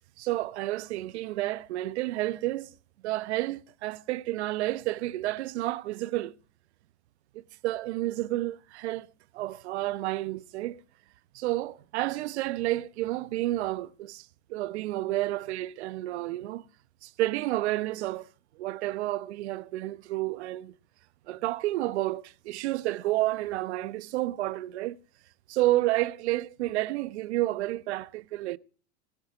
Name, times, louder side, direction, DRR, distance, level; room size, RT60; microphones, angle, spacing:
voice 1, 0.2-2.7 3.0-6.3 7.3-9.1 9.3-10.8 11.3-16.6 17.0-18.3 18.6-20.8 21.3-25.0 25.5-28.6, right 16 dB, 70° right, 1.1 m, -30 dB
20.5 x 7.8 x 5.0 m
supercardioid pair, 120°, 34 cm